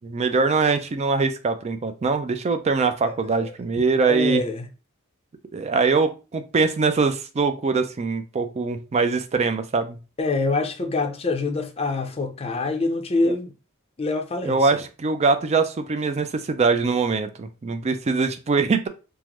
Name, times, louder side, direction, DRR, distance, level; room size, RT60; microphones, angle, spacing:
voice 1, 0.0-4.4 5.5-10.0 14.5-18.9, right 4 dB, 30° right, 0.4 m, -22 dB
voice 2, 3.0-3.5 4.1-4.7 10.2-13.6 14.0-14.8, left 3 dB, 25° left, 0.5 m, -26 dB
3.6 x 2.0 x 3.0 m
head